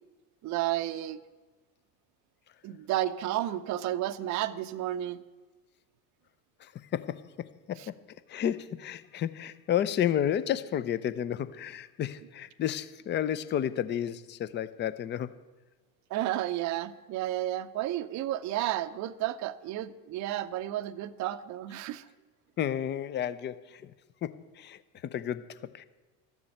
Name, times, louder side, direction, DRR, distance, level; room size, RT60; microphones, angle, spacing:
voice 1, 0.4-1.2 2.6-5.2 7.8-7.9 16.1-22.1, right 13 dB, 35° right, 0.6 m, -32 dB
voice 2, 6.6-7.9 8.3-15.4 22.6-23.9 24.2-25.8, left 10 dB, 25° left, 0.5 m, -32 dB
13.0 x 7.1 x 7.8 m
hypercardioid pair, 80°, 49 cm